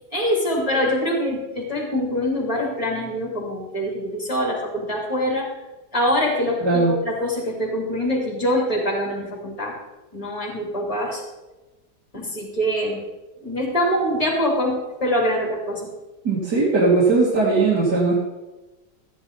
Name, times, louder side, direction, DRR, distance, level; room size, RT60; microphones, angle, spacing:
voice 1, 0.1-5.5 5.9-9.7 10.1-11.2 12.1-13.0 13.4-15.9, equal, 20° left, -1 dB, 3.2 m, -24 dB
voice 2, 6.6-6.9 16.2-18.1, right 3 dB, 70° right, -7 dB, 3.0 m, -18 dB
14.5 x 10.0 x 4.0 m, 1.1 s
omnidirectional pair, 1.9 m